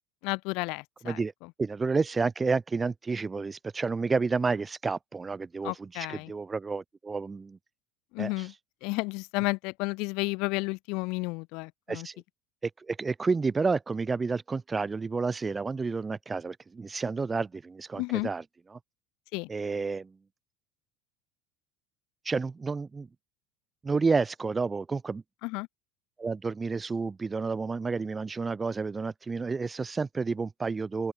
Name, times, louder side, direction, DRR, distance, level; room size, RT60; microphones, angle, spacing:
voice 1, 0.2-1.2 5.6-6.3 8.1-8.5 8.8-12.1 17.9-18.3 19.3-19.5 25.4-25.7, left 27 dB, 65° left, 0.4 m, -32 dB
voice 2, 1.6-7.6 8.2-8.3 11.9-12.2 12.6-18.4 18.7-18.8 19.5-20.1 22.3-23.1 23.8-25.2 26.2-31.1, right 4 dB, 15° right, 0.4 m, -30 dB
open air
supercardioid pair, 135°, 0 cm